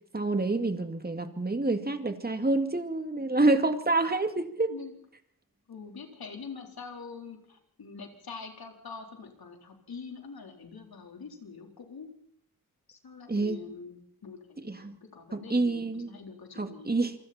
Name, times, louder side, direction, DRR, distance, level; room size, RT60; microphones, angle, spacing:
voice 1, 0.1-4.7 13.3-13.6 14.6-15.0 15.3-16.1 16.6-17.2, right 2 dB, 25° right, 7 dB, 2.3 m, -27 dB
voice 2, 5.7-12.1 12.9-16.9, left 5 dB, 90° left, 3 dB, 4.2 m, -44 dB
27.5 x 24.5 x 4.4 m, 0.65 s
wide cardioid pair, 85°, 35 cm